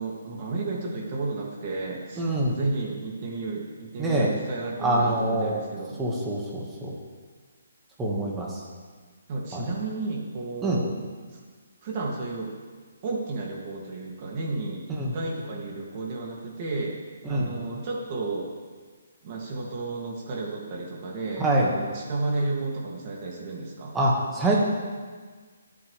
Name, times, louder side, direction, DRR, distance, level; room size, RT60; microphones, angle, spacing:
voice 1, 0.0-6.0 9.3-10.9 11.8-12.5 13.0-17.0 17.3-18.5 19.2-23.9, right 3 dB, 30° right, -2 dB, 2.6 m, -32 dB
voice 2, 2.2-2.6 4.0-4.3 4.8-5.6 6.0-6.9 8.0-8.5 9.5-9.6 10.6-10.8 15.0-15.2 17.3-17.5 21.4-21.7 23.9-24.6, right 1 dB, 10° right, -4 dB, 1.9 m, -25 dB
24.0 x 8.6 x 3.5 m, 1.5 s
hypercardioid pair, 165°, 0 cm